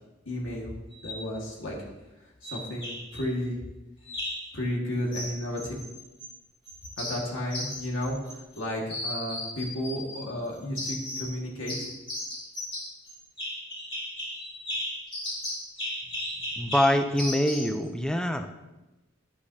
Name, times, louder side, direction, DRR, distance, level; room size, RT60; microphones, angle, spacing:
voice 1, 0.2-0.7 1.0-1.9 2.2-3.6 4.5-5.7 7.0-11.9, left 1 dB, 80° left, -3 dB, 1.8 m, -33 dB
sound 1, 0.9-1.3 2.4-3.2 4.1-4.5 5.1-6.3 6.7-8.6 8.9-10.2 10.8-11.4 11.7-17.8, left 1 dB, 30° left, 2.9 m, -36 dB
voice 2, 16.6-18.5, left 1 dB, 5° left, 7 dB, 0.6 m, -25 dB
11.0 x 8.4 x 2.8 m, 1.0 s
head